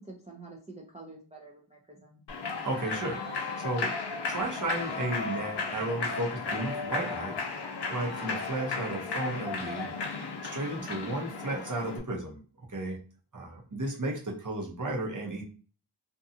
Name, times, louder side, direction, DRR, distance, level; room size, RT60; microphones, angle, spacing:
voice 1, 0.0-2.2 10.8-11.2, right 3 dB, 15° right, -2 dB, 0.5 m, -48 dB
Human voice / Clapping / Cheering, 2.3-12.0, left 4 dB, 55° left, 0.6 m, -35 dB
voice 2, 2.6-3.9 4.3-7.3 7.9-9.9 10.5-12.4 12.7-13.0 13.3-15.4, right 2 dB, 40° right, -1 dB, 0.9 m, -33 dB
2.6 x 2.3 x 2.7 m, 0.38 s
wide cardioid pair, 55°, 50 cm